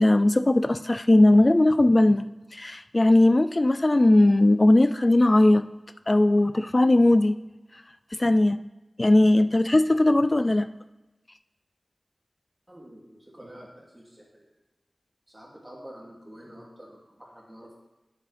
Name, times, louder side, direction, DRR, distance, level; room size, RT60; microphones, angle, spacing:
voice 1, 0.0-2.2 2.5-5.6 6.1-7.4 8.2-8.6 9.0-10.7, left 1 dB, 40° left, 12 dB, 0.3 m, -19 dB
voice 2, 12.7-14.4 15.3-17.8, equal, 20° right, -3 dB, 2.5 m, -47 dB
8.3 x 7.2 x 3.4 m, 1.1 s
cardioid pair, 40°, 0 cm